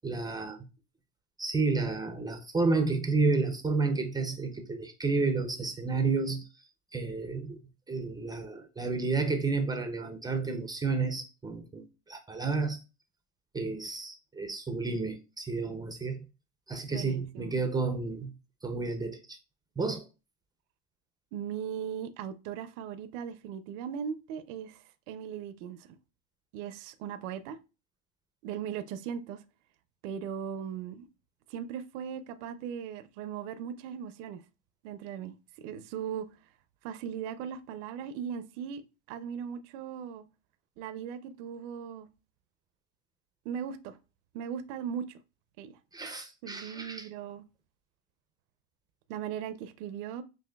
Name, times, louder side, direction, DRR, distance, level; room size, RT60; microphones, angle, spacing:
voice 1, 0.0-0.6 1.4-6.5 6.9-7.6 7.9-12.8 13.5-16.2 16.7-18.3 18.6-19.4 19.8-20.0 45.9-47.1, right 4 dB, 10° right, 0.4 m, -31 dB
voice 2, 16.9-17.5 21.3-25.9 26.5-27.6 28.4-29.4 30.0-31.1 31.5-34.4 34.8-36.3 36.8-38.8 39.1-40.2 40.8-42.1 43.4-44.0 44.3-45.2 45.6-45.8 46.4-47.4 49.1-50.2, right 8 dB, 80° right, 0.5 m, -38 dB
6.1 x 2.5 x 2.2 m
supercardioid pair, 130°, 36 cm